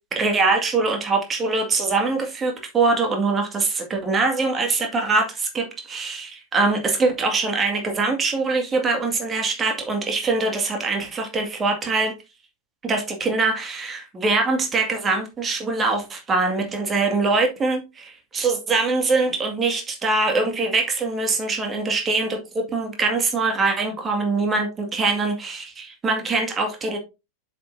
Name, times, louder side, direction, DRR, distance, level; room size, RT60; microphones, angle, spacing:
voice 1, 0.1-12.1 12.8-27.0, right 3 dB, 20° right, 2.0 m, -23 dB
7.6 x 6.7 x 2.6 m
figure-of-eight pair, 90°, 0 cm